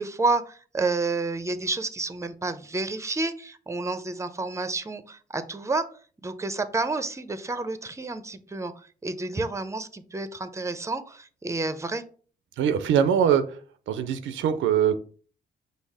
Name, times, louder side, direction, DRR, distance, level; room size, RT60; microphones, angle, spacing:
voice 1, 0.0-5.8 6.2-8.7 9.0-12.0, right 3 dB, 15° right, 0.6 m, -29 dB
voice 2, 12.6-13.4 13.9-15.0, right 8 dB, 80° right, 0.5 m, -22 dB
5.4 x 2.0 x 4.7 m
supercardioid pair, 55°, 20 cm